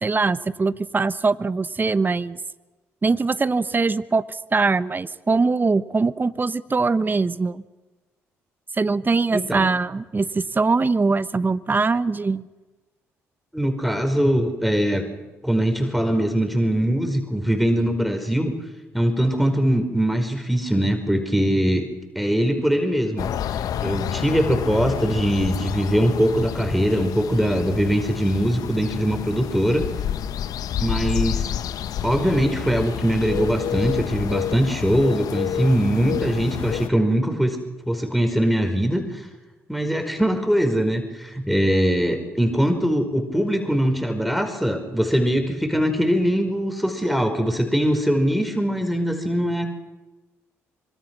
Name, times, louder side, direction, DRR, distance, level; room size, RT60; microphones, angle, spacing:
voice 1, 0.0-2.4 3.0-7.6 8.7-12.4, right 4 dB, 30° right, 14 dB, 1.1 m, -22 dB
voice 2, 9.3-9.7 13.5-15.0 15.4-18.5 18.9-21.8 22.1-23.3 23.8-29.8 30.8-31.5 32.0-37.6 37.8-39.3 39.7-49.7, equal, ahead, 5 dB, 5.0 m, -22 dB
sound 1, 23.2-36.9, left 10 dB, 65° left, 0.9 m, -29 dB
26.0 x 24.0 x 6.3 m, 1.2 s
hypercardioid pair, 55°, 7 cm